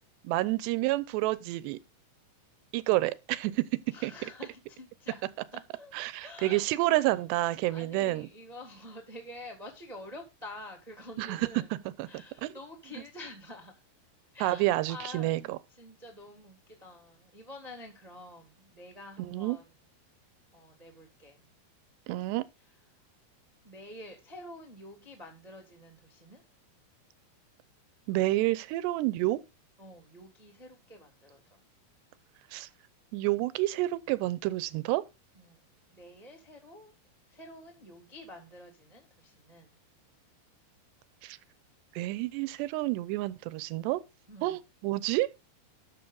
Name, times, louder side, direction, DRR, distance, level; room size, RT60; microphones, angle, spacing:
voice 1, 0.2-1.8 2.7-3.6 4.0-4.1 5.9-8.3 11.2-11.4 12.0-12.5 14.4-15.6 19.2-19.6 22.1-22.4 28.1-29.4 32.5-32.7 33.1-35.0 41.2-41.4 42.0-44.0 44.4-45.3, right 17 dB, 80° right, 2.8 m, -29 dB
voice 2, 3.9-5.2 5.5-6.6 7.7-11.7 12.1-13.7 14.3-19.7 20.5-21.5 23.6-26.4 29.8-31.6 35.3-35.6 35.9-36.9 37.3-39.7 44.3-44.6, left 1 dB, 15° right, 1.6 m, -48 dB
13.0 x 7.5 x 3.9 m
omnidirectional pair, 5.1 m